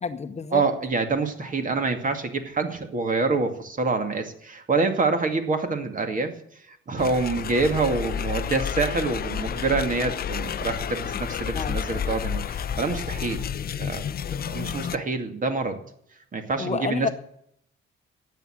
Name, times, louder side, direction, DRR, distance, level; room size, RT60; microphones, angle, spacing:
voice 1, 0.0-0.7 11.5-12.0 16.6-17.1, left 5 dB, 30° left, 9 dB, 0.9 m, -30 dB
voice 2, 0.5-6.3 6.7-13.4 13.8-14.1 14.5-15.8 16.3-17.1, right 3 dB, 40° right, 6 dB, 2.3 m, -26 dB
sound 1, 7.0-15.0, left 8 dB, 45° left, 0.5 m, -30 dB
12.5 x 8.7 x 8.7 m, 0.70 s
cardioid pair, 125°, 21 cm